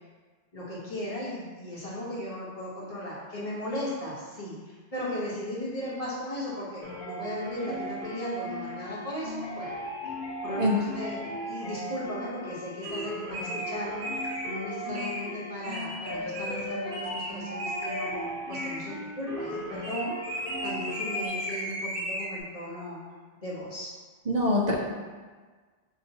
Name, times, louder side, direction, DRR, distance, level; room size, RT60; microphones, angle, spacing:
voice 1, 0.5-9.8 10.4-23.0 23.4-23.9, left 1 dB, 35° left, -6 dB, 0.9 m, -36 dB
sound 1, 6.8-21.3, equal, 55° left, 1.1 m, -37 dB
sound 2, 12.8-13.0 13.3-13.7 14.0-14.6 14.9-15.2 15.6-16.6 16.9-17.3 17.6-18.1 18.5-18.8 19.8-22.4, equal, 75° right, 1.0 m, -35 dB
voice 2, 24.3-24.7, left 1 dB, 50° right, -2 dB, 0.5 m, -24 dB
5.6 x 2.3 x 2.7 m, 1.4 s
omnidirectional pair, 1.1 m